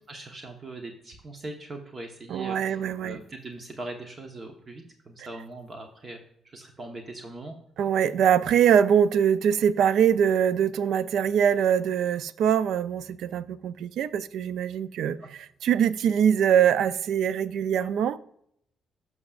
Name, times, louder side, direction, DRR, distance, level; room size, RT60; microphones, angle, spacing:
voice 1, 0.1-6.2 6.4-7.5 15.2-15.3, right 2 dB, 35° right, 1.0 m, -41 dB
voice 2, 2.3-3.2 7.8-15.2 15.6-18.2, right 8 dB, 75° right, 0.4 m, -23 dB
11.0 x 6.3 x 2.4 m
cardioid pair, 90°, 0 cm